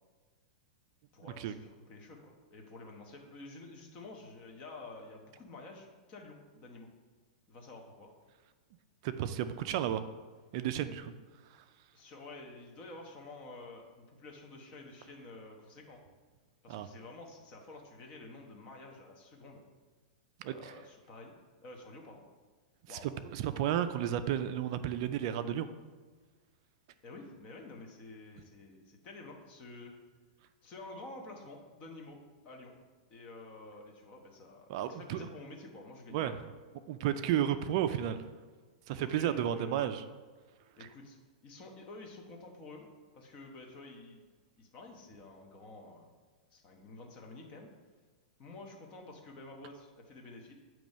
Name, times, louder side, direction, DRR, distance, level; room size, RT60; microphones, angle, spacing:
voice 1, 1.1-6.9 7.5-8.1 9.7-9.8 11.9-16.0 16.6-19.6 20.5-21.3 21.6-22.2 22.9-23.1 27.0-29.9 30.6-32.2 32.4-32.7 33.1-36.4 39.0-39.8 40.8-41.2 41.4-42.9 43.1-44.2 44.6-46.1 46.5-47.7 48.4-50.6, left 2 dB, 30° left, 2 dB, 1.0 m, -50 dB
voice 2, 9.0-10.0 10.5-11.1 16.7-16.9 20.4-20.7 22.9-25.7 34.7-35.3 36.1-36.4 36.9-38.2 38.9-40.0 40.8-40.9, right 10 dB, 40° right, 11 dB, 0.3 m, -32 dB
8.7 x 3.0 x 5.3 m, 1.4 s
supercardioid pair, 165°, 4 cm